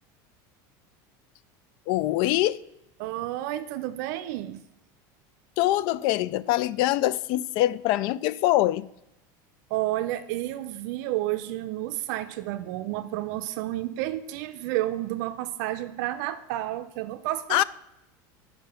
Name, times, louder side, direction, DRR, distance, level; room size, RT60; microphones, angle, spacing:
voice 1, 1.9-2.6 5.6-8.9 17.5-17.6, left 15 dB, 55° left, 0.4 m, -24 dB
voice 2, 3.0-4.6 9.7-17.6, right 15 dB, 70° right, 0.6 m, -31 dB
9.5 x 5.6 x 5.8 m
supercardioid pair, 150°, 10 cm